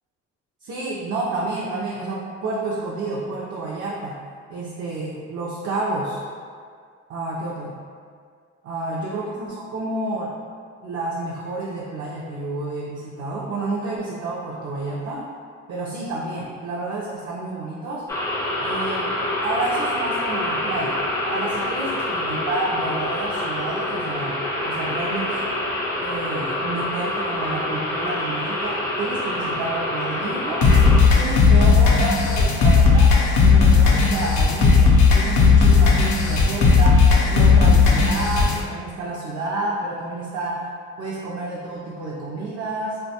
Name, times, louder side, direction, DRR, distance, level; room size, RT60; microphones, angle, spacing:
voice 1, 0.6-4.2 4.5-6.2 7.1-7.8 8.6-10.3 10.8-15.3 15.7-18.0 18.6-19.1 19.4-21.0 21.2-25.5 26.0-30.6 31.1-33.1 33.4-40.7 41.0-43.0, right 2 dB, 55° right, -5 dB, 0.4 m, -29 dB
sound 1, 18.1-31.0, left 1 dB, 10° left, 0.4 m, -26 dB
sound 2, 30.6-38.6, left 4 dB, 70° left, 0.5 m, -15 dB
2.4 x 2.2 x 2.7 m, 2.1 s
cardioid pair, 90°, 30 cm